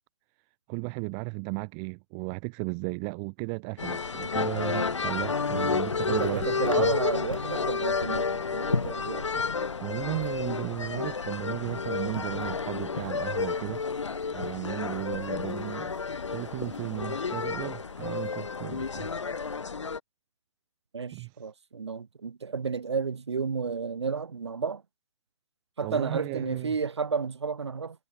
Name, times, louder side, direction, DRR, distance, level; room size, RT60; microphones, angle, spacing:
voice 1, 0.7-6.9 9.8-13.8 14.3-15.9 16.3-19.1 21.1-21.3 25.8-26.7, right 40 dB or more, 15° right, 1.4 m, -35 dB
sound 1, 3.8-20.0, left 5 dB, 65° left, 2.5 m, -31 dB
sound 2, 5.3-19.6, left 3 dB, 90° left, 7.7 m, -41 dB
voice 2, 6.1-9.3 20.9-24.8 25.8-28.0, right 5 dB, 60° right, 6.9 m, -32 dB
hypercardioid pair, 165°, 16 cm